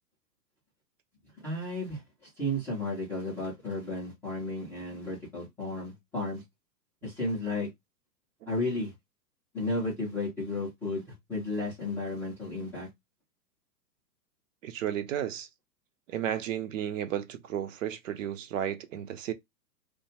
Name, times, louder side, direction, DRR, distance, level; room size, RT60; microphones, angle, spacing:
voice 1, 1.4-2.0 2.4-6.4 7.0-7.7 8.5-8.9 9.5-12.9, left 1 dB, 5° left, 0.4 m, -33 dB
voice 2, 14.6-15.5 16.1-19.3, right 10 dB, 50° right, 0.5 m, -33 dB
2.7 x 2.2 x 2.6 m
hypercardioid pair, 115°, 49 cm